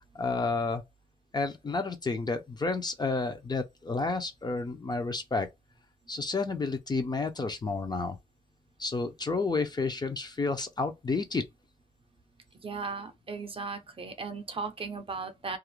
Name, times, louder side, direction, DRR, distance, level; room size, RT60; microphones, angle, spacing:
voice 1, 0.1-0.8 1.3-5.5 6.1-8.2 8.8-11.4, left 3 dB, 25° left, 0.4 m, -30 dB
voice 2, 12.6-15.6, right 4 dB, 35° right, 0.5 m, -37 dB
2.4 x 2.0 x 2.9 m
wide cardioid pair, 180°, 16 cm